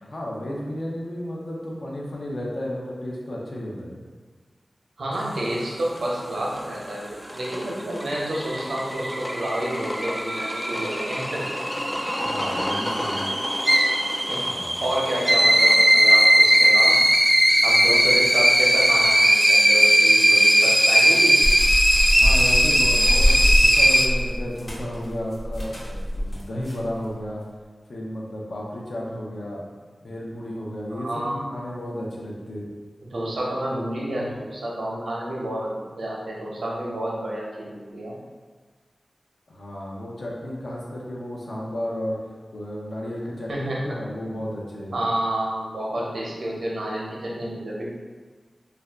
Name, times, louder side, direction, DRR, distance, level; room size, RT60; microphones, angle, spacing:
voice 1, 0.0-4.0 12.2-13.3 14.4-14.9 17.9-18.0 22.2-27.4 27.9-29.6 30.0-32.7 39.5-42.2 42.5-45.0, left 1 dB, 75° left, -4 dB, 0.6 m, -33 dB
voice 2, 5.0-11.5 14.3-14.4 14.8-17.0 17.6-21.5 30.9-31.4 33.1-38.1 43.5-44.0 44.9-47.8, right 1 dB, 90° right, -4 dB, 0.7 m, -29 dB
sound 1, 5.5-16.7, equal, 30° left, 0.6 m, -33 dB
sound 2, 7.8-24.1, equal, 15° right, 0.3 m, -19 dB
sound 3, 21.4-26.9, equal, 55° left, 0.9 m, -24 dB
2.5 x 2.2 x 3.4 m, 1.4 s
cardioid pair, 50°, 0 cm